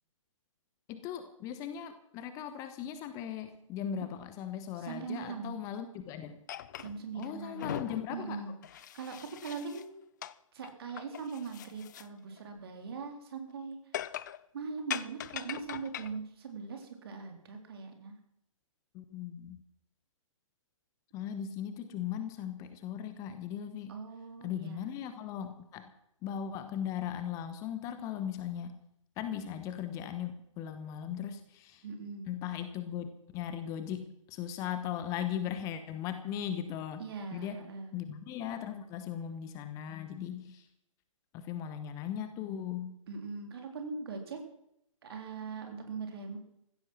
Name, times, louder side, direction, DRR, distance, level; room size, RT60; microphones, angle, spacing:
voice 1, 0.9-6.4 7.1-8.4 18.9-19.6 21.1-23.9 24.4-25.9 26.2-28.8 29.2-31.8 32.3-37.0 37.3-40.7 41.3-43.0, left 9 dB, 20° left, 10 dB, 1.0 m, -38 dB
voice 2, 4.8-5.6 6.8-7.8 8.1-8.5 8.9-10.0 10.5-13.8 14.5-18.1 23.9-24.9 31.8-32.3 37.0-37.9 43.1-44.4 45.0-46.4, right 5 dB, 45° right, 4 dB, 3.5 m, -41 dB
sound 1, 6.5-7.3 7.5-9.8 10.2-10.3 10.6-12.1 12.4-12.5 13.9-14.4 14.9-16.2, left 11 dB, 35° left, 0.5 m, -41 dB
15.5 x 13.5 x 6.2 m, 0.77 s
figure-of-eight pair, 130°, 17 cm